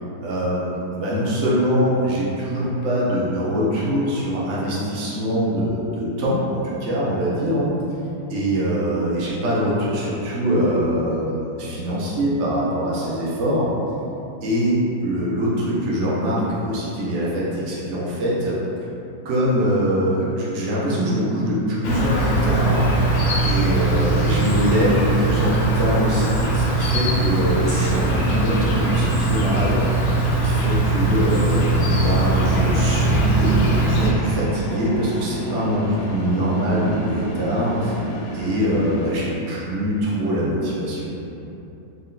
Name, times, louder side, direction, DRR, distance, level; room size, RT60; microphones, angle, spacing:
voice 1, 0.2-7.7 8.3-13.6 14.4-14.8 15.0-18.6 19.2-22.9 23.4-29.8 30.3-38.0 38.3-41.1, equal, 80° right, -7 dB, 0.6 m, -23 dB
Insect, 21.8-34.1, right 2 dB, 75° left, 1.3 m, -20 dB
sound 1, 31.8-39.1, right 1 dB, 90° left, 1.4 m, -29 dB
4.0 x 2.1 x 3.8 m, 2.9 s
omnidirectional pair, 2.2 m